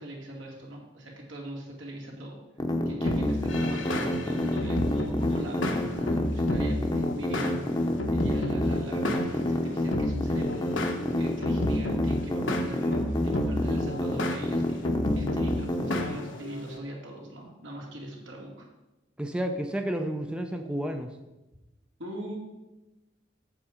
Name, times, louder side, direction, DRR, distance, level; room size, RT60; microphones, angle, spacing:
voice 1, 0.0-2.4 2.9-7.6 8.1-10.7 11.2-14.9 15.2-18.7 22.0-22.4, right 1 dB, 75° right, -1 dB, 2.2 m, -40 dB
sound 1, 2.6-16.0, left 1 dB, 20° left, 0.8 m, -28 dB
sound 2, 3.1-16.8, left 1 dB, 75° left, 1.1 m, -33 dB
voice 2, 19.2-21.1, right 1 dB, 5° right, 5 dB, 0.5 m, -31 dB
7.5 x 7.2 x 5.0 m, 1.0 s
head